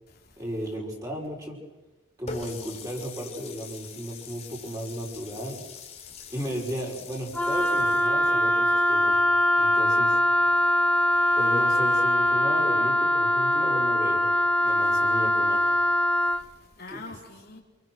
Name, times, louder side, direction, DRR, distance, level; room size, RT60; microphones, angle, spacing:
voice 1, 0.4-1.6 2.2-5.6 6.3-9.2 9.6-10.2 11.4-14.3 14.6-15.7 16.9-17.0, equal, 15° right, -1 dB, 5.3 m, -34 dB
Water tap faucet, 2.3-8.1, left 5 dB, 30° left, 3.0 m, -43 dB
Wind instrument woodwind instrument, 7.3-16.4, left 1 dB, 5° left, 0.9 m, -22 dB
voice 2, 10.5-11.4 16.2-17.6, left 3 dB, 50° left, 0 dB, 2.9 m, -47 dB
28.0 x 24.0 x 6.4 m, 1.1 s
head